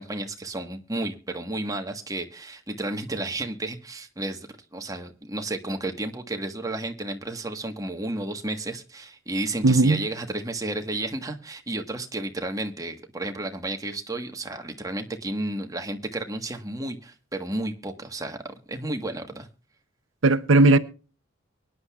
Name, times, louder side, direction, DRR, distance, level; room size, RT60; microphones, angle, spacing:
voice 1, 0.0-18.4 18.7-19.5, right 2 dB, 20° right, 1.3 m, -32 dB
voice 2, 9.6-10.0 20.2-20.8, right 2 dB, 90° right, 0.7 m, -17 dB
24.0 x 10.0 x 2.3 m
head